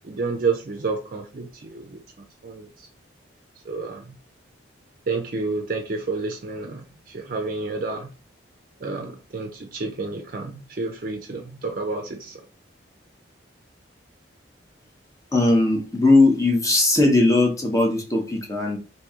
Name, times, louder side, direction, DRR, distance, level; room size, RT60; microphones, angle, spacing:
voice 1, 0.0-2.0 2.4-2.9 3.6-4.1 5.1-8.1 8.8-12.5, right 3 dB, 45° right, 0.4 m, -30 dB
voice 2, 15.3-18.8, left 2 dB, 15° left, 0.6 m, -19 dB
3.0 x 2.6 x 3.5 m
head